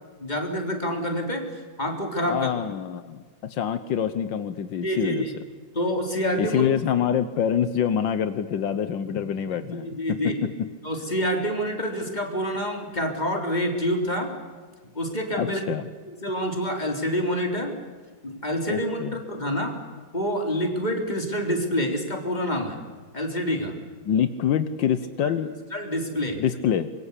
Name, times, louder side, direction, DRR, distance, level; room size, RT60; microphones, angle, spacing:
voice 1, 0.2-2.5 4.8-5.3 5.7-6.6 9.5-10.4 10.8-14.4 14.9-15.6 16.2-17.7 18.2-19.8 20.1-22.8 23.1-23.8 25.2-25.3 25.7-26.4, equal, 20° left, 3 dB, 3.8 m, -27 dB
voice 2, 2.2-5.2 6.4-9.9 15.4-15.8 18.7-19.1 24.0-25.5 26.4-26.9, left 8 dB, 80° left, 11 dB, 1.7 m, -25 dB
25.0 x 22.5 x 8.4 m, 1.5 s
omnidirectional pair, 2.0 m